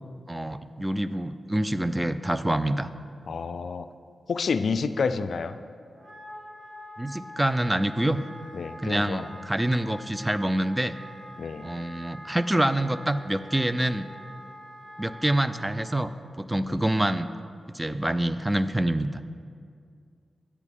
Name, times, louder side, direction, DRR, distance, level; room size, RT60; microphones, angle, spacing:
voice 1, 0.3-2.9 7.0-8.2 8.8-11.0 11.6-14.1 15.0-16.1 16.4-17.3 17.7-19.2, right 1 dB, 15° right, 12 dB, 0.4 m, -26 dB
voice 2, 3.3-3.9 4.3-5.6 8.5-9.3 11.4-11.7, left 5 dB, 75° left, 11 dB, 0.3 m, -29 dB
Wind instrument woodwind instrument, 5.9-15.8, equal, 40° right, 1.5 m, -45 dB
10.5 x 8.3 x 3.6 m, 2.2 s
cardioid pair, 45°, 0 cm